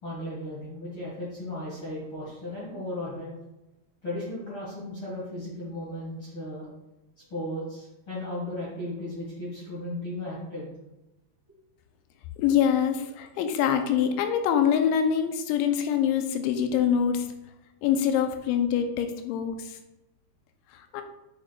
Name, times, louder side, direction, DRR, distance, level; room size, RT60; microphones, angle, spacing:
voice 1, 0.0-3.3 4.0-6.7 7.3-10.7, left 1 dB, 45° left, -7 dB, 1.7 m, -35 dB
voice 2, 12.4-17.3 17.8-19.8 20.7-21.0, left 8 dB, 90° left, 6 dB, 3.0 m, -25 dB
8.9 x 6.6 x 2.4 m, 0.97 s
omnidirectional pair, 5.2 m